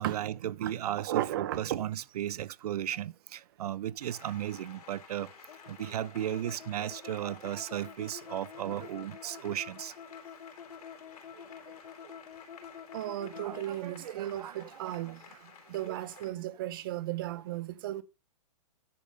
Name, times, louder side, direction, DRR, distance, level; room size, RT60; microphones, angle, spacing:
voice 1, 0.0-5.3 5.7-9.9 13.4-15.1 15.8-16.3, right 11 dB, 75° right, 0.4 m, -36 dB
voice 2, 1.0-1.9 12.9-15.2 15.7-18.0, right 13 dB, 35° right, 0.6 m, -35 dB
Applause, 4.0-16.3, left 6 dB, 70° left, 3.3 m, -54 dB
sound 1, 5.5-13.7, left 8 dB, 85° left, 1.0 m, -48 dB
10.5 x 3.6 x 6.4 m
hypercardioid pair, 170°, 20 cm